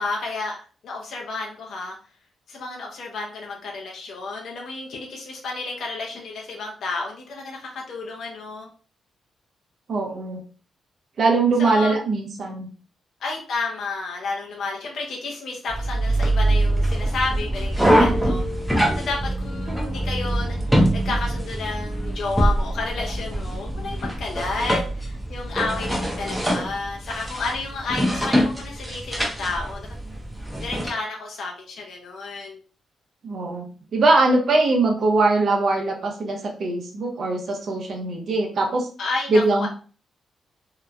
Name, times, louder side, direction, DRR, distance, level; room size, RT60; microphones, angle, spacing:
voice 1, 0.0-1.9 2.5-8.7 11.6-12.0 13.2-20.8 21.0-29.9 30.6-32.6 39.0-39.7, left 3 dB, 70° left, 0 dB, 0.6 m, -31 dB
voice 2, 9.9-10.4 11.2-12.7 33.2-33.7 33.9-38.9 39.3-39.7, right 3 dB, 55° right, 0 dB, 0.7 m, -21 dB
sound 1, 15.7-30.9, right 1 dB, 5° right, 0.6 m, -24 dB
2.9 x 2.1 x 2.4 m, 0.39 s
wide cardioid pair, 135°, 0 cm